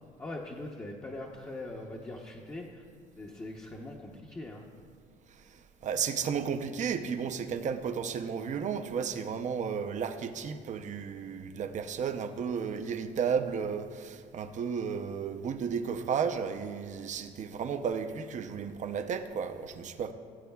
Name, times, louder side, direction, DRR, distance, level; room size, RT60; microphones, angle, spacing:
voice 1, 0.2-2.8 3.2-4.7, left 2 dB, 15° left, -2 dB, 0.8 m, -41 dB
voice 2, 5.8-20.1, right 6 dB, 45° right, 9 dB, 0.6 m, -33 dB
17.5 x 8.1 x 2.3 m, 2.2 s
cardioid pair, 110°, 17 cm